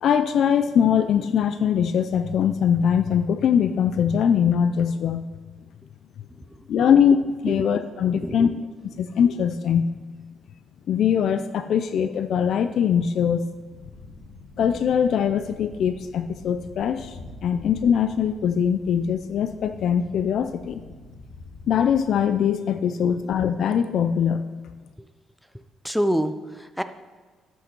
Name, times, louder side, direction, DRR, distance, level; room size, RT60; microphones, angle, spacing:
voice 1, 0.0-5.3 6.7-7.2 7.4-8.5 9.0-9.9 10.9-13.4 14.6-17.2 17.4-20.8 21.7-24.5, left 8 dB, 55° left, 10 dB, 0.4 m, -22 dB
voice 2, 6.3-6.9 7.5-7.7 8.2-8.6 9.0-9.1 23.0-23.3 25.0-25.1 25.5-26.8, equal, ahead, 10 dB, 0.4 m, -29 dB
sound 1, 13.7-22.4, left 2 dB, 75° left, 2.5 m, -45 dB
13.0 x 6.4 x 4.5 m, 1.4 s
cardioid pair, 155°, 0 cm